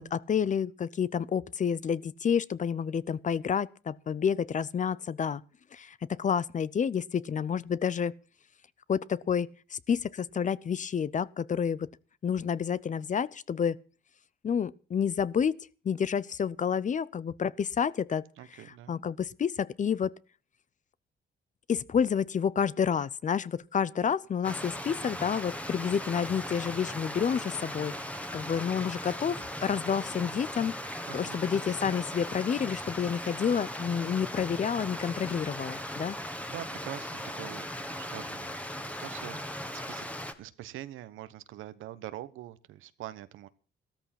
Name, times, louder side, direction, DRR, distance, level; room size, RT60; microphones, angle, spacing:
voice 1, 0.0-5.4 5.7-8.1 8.9-11.9 12.2-13.8 14.4-15.6 15.8-18.2 18.9-20.1 21.7-27.9 28.3-36.2, left 7 dB, 40° left, 0.6 m, -29 dB
voice 2, 18.4-19.0 31.1-31.4 36.5-40.1 40.4-43.5, right 13 dB, 85° right, 1.1 m, -44 dB
Stream, 24.4-40.3, left 1 dB, 5° left, 1.6 m, -38 dB
14.0 x 13.5 x 5.9 m
cardioid pair, 90°, 20 cm